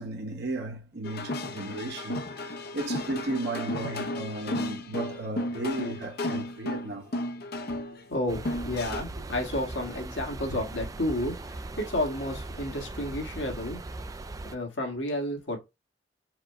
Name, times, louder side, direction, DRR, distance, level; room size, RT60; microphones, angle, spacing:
voice 1, 0.0-7.1, right 2 dB, 55° right, 1.1 m, -35 dB
sound 1, 1.0-9.0, left 1 dB, 55° left, 0.6 m, -34 dB
voice 2, 8.1-13.8 14.5-15.6, left 1 dB, 75° left, 1.7 m, -31 dB
sound 2, 8.3-14.6, right 2 dB, 20° right, 0.3 m, -39 dB
4.8 x 2.2 x 4.8 m
head